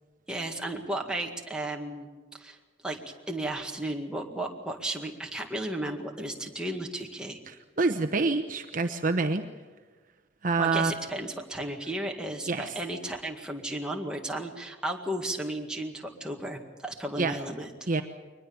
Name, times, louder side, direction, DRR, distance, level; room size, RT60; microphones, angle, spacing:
voice 1, 0.3-2.6 2.8-3.0 3.3-7.4 10.6-17.7, right 1 dB, 5° right, 1 dB, 2.0 m, -34 dB
voice 2, 7.5-9.4 10.4-10.9 12.5-12.7 17.2-17.3 17.9-18.0, right 3 dB, 45° right, 7 dB, 1.0 m, -27 dB
23.0 x 20.0 x 7.1 m, 1.3 s
head